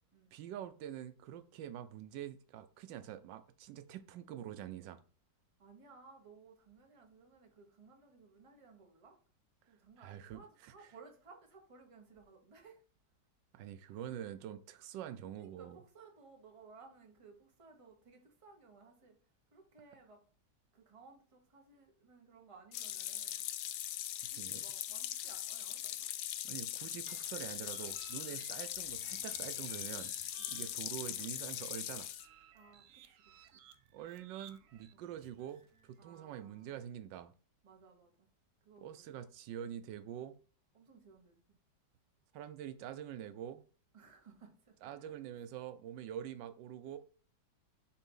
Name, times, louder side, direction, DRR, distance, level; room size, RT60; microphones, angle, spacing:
voice 1, 0.3-5.0 10.0-10.7 13.5-15.8 24.2-24.6 25.2-25.3 26.4-30.1 30.5-32.1 33.9-37.3 38.8-40.4 42.3-43.6 44.8-47.0, right 10 dB, 85° right, 1.3 m, -46 dB
voice 2, 5.6-9.2 9.7-12.8 13.9-14.0 15.4-19.2 19.5-20.2 20.7-23.4 24.3-26.1 28.3-28.5 30.4-30.6 32.5-33.2 33.5-33.6 34.9-35.1 36.0-36.8 37.6-38.3 38.6-39.1 40.7-41.6 43.9-45.1, right 4 dB, 20° right, 1.0 m, -59 dB
Pond Water, 22.7-32.3, left 12 dB, 75° left, 1.1 m, -41 dB
sound 1, 27.1-36.0, right 9 dB, 70° right, 0.8 m, -59 dB
7.0 x 2.7 x 5.4 m
omnidirectional pair, 1.9 m